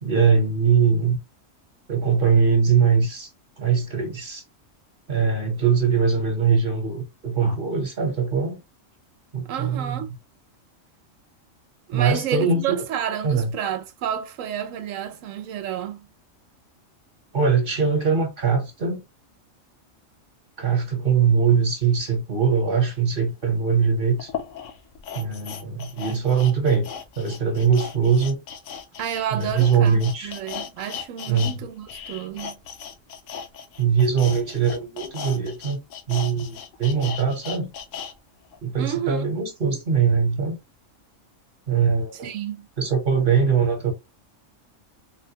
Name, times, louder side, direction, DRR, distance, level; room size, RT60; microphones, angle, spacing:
voice 1, 0.0-1.2 1.9-3.3 3.6-4.4 5.1-8.6 9.3-10.0 11.9-12.8 13.2-13.5 17.3-19.0 20.6-24.3 25.1-26.9 27.2-28.4 29.3-30.3 31.3-31.6 33.8-35.8 36.1-37.7 38.6-40.6 41.7-42.3 42.8-43.9, right 6 dB, 45° right, 1.1 m, -21 dB
voice 2, 9.5-10.1 11.9-16.1 29.0-32.6 38.8-39.3 42.2-42.7, right 9 dB, 85° right, 1.0 m, -30 dB
sound 1, 23.4-23.5 24.2-31.6 31.8-38.1 38.5-38.6, left 7 dB, 75° left, 1.0 m, -37 dB
3.8 x 2.2 x 2.8 m
omnidirectional pair, 1.3 m